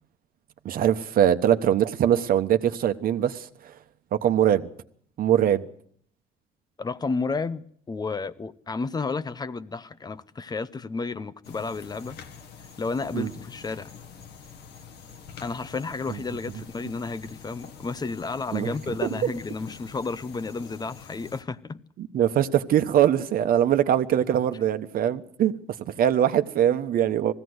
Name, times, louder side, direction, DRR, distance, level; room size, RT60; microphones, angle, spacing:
voice 1, 0.6-3.7 4.1-4.7 5.2-5.7 13.1-13.3 18.5-18.7 19.0-19.3 22.0-25.5 25.9-27.3, right 10 dB, 60° right, 1.2 m, -22 dB
voice 2, 6.8-12.2 12.8-13.9 15.4-21.8, left 4 dB, 25° left, 0.8 m, -32 dB
sound 1, 11.4-21.4, left 6 dB, 75° left, 1.8 m, -46 dB
20.0 x 16.0 x 8.0 m
cardioid pair, 110°, 17 cm